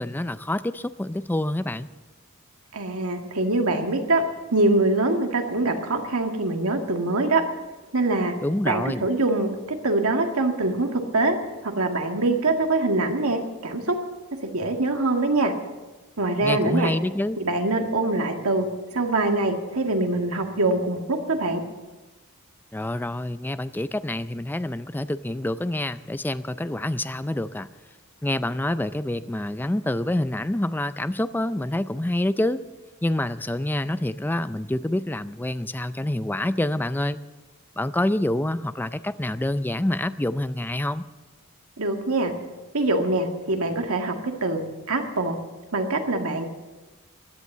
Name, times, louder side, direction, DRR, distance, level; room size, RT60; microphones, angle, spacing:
voice 1, 0.0-1.9 8.4-9.1 16.4-17.4 22.7-27.7 28.2-32.6 33.0-37.2 37.8-41.0, left 1 dB, 10° left, 13 dB, 0.4 m, -27 dB
voice 2, 2.7-4.2 4.5-7.4 7.9-8.3 8.6-11.4 11.6-14.0 14.4-15.5 16.2-16.9 17.4-21.6 41.8-42.3 42.7-44.6 44.9-45.4 45.7-46.5, right 2 dB, 70° right, 4 dB, 1.9 m, -24 dB
16.0 x 11.0 x 7.3 m, 1.2 s
head